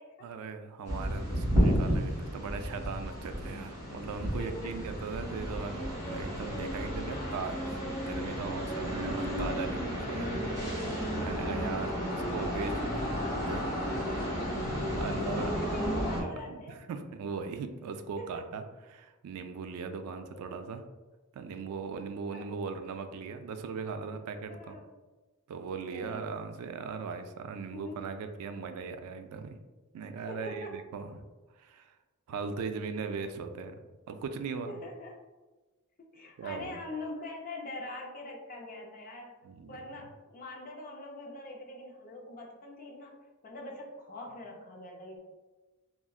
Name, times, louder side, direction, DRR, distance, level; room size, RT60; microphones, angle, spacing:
voice 1, 0.2-7.6 8.0-10.4 11.2-13.1 13.5-13.7 14.2-14.3 14.6-20.8 21.3-24.8 25.5-29.6 29.9-31.2 31.6-31.9 32.3-33.8 34.1-34.8 36.4-36.8 39.4-39.8, right 5 dB, 80° right, 8 dB, 0.3 m, -39 dB
sound 1, 0.8-16.2, equal, 15° right, 1.1 m, -32 dB
voice 2, 4.4-4.7 7.1-7.5 11.4-11.6 12.2-12.3 14.1-14.3 15.4-16.8 18.2-18.3 20.3-20.4 22.3-22.5 24.5-24.9 25.9-26.3 27.7-28.0 30.3-30.8 34.6-35.2 36.0-39.3 39.7-45.2, left 1 dB, 40° left, 0 dB, 0.5 m, -43 dB
3.6 x 2.1 x 2.3 m, 1.2 s
head